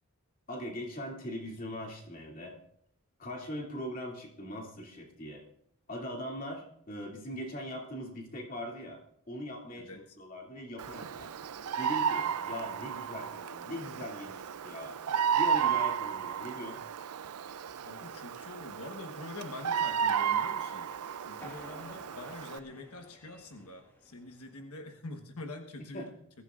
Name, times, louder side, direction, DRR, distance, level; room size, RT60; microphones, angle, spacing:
voice 1, 0.5-2.5 3.2-5.4 5.9-9.0 9.3-9.9 10.2-11.3 11.7-14.9 15.3-16.8 25.9-26.1, equal, 40° left, -1 dB, 2.6 m, -40 dB
voice 2, 9.8-10.2 17.7-20.9 21.2-26.1, left 2 dB, 85° left, 4 dB, 1.3 m, -45 dB
Bird vocalization bird call bird song, 10.8-22.6, right 8 dB, 85° right, 0.5 m, -33 dB
sound 1, 21.4-24.9, equal, 10° left, 1.7 m, -54 dB
22.0 x 14.5 x 2.5 m, 0.72 s
head